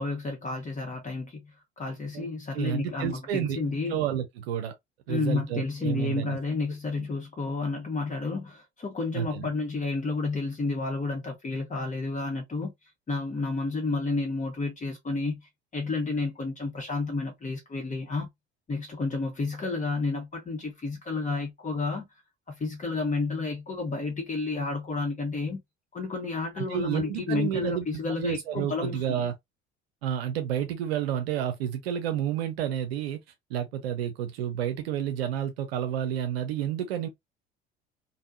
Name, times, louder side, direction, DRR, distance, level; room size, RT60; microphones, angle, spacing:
voice 1, 0.0-4.0 5.1-12.7 13.1-15.4 15.7-18.3 18.7-22.1 22.6-25.6 25.9-29.2, left 3 dB, 25° left, 1.1 m, -31 dB
voice 2, 2.5-3.6 3.9-4.7 5.1-6.4 7.0-7.1 9.1-9.5 26.6-27.9 28.2-29.3 30.0-33.2 33.5-37.1, right 10 dB, 65° right, 0.6 m, -30 dB
3.4 x 2.2 x 2.6 m
figure-of-eight pair, 60°, 33 cm